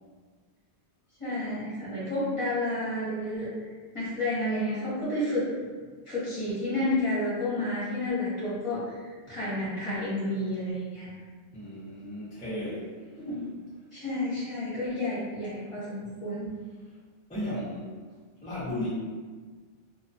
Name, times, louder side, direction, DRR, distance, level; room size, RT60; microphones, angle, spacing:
voice 1, 1.2-3.5 3.9-5.5 6.0-11.1 13.2-13.5 13.9-16.5, left 1 dB, 30° left, -10 dB, 0.8 m, -30 dB
voice 2, 11.5-12.9 17.3-17.9 18.4-18.9, left 1 dB, 10° left, -11 dB, 0.4 m, -34 dB
2.3 x 2.2 x 2.5 m, 1.5 s
omnidirectional pair, 1.3 m